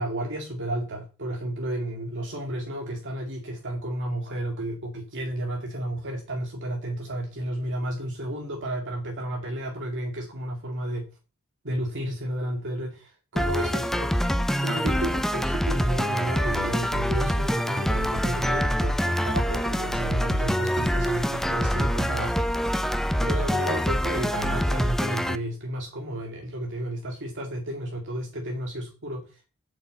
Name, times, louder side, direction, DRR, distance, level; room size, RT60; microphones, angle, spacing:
voice 1, 0.0-11.1 11.6-14.1 14.6-22.7 23.2-29.3, right 1 dB, 55° right, 1 dB, 2.4 m, -32 dB
sound 1, 13.4-25.4, equal, ahead, 0.5 m, -25 dB
7.8 x 6.7 x 8.3 m, 0.33 s
head